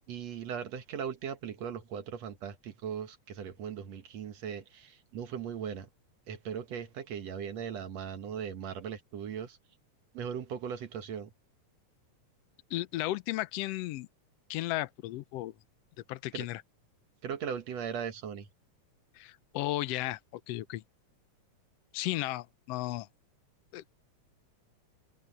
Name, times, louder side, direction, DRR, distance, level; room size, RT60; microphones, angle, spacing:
voice 1, 0.1-5.9 6.3-9.6 10.1-11.3 16.3-16.5 17.2-18.5, right 8 dB, 65° right, 2.4 m, -38 dB
voice 2, 12.7-14.1 14.5-15.5 16.1-16.6 19.2-20.2 20.5-20.8 21.9-23.1 23.7-23.9, left 16 dB, 70° left, 1.6 m, -34 dB
open air
omnidirectional pair, 3.4 m